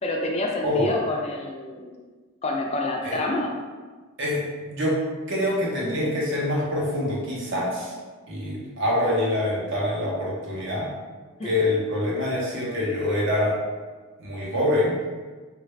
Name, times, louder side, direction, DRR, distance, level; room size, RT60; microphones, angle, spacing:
voice 1, 0.0-1.9 2.4-3.5 11.4-11.5, left 2 dB, 30° left, 0 dB, 0.3 m, -27 dB
voice 2, 4.2-5.0 5.3-7.9 8.3-10.9 11.4-13.6 14.2-15.0, left 1 dB, 60° right, -4 dB, 0.8 m, -25 dB
3.1 x 2.5 x 3.1 m, 1.4 s
head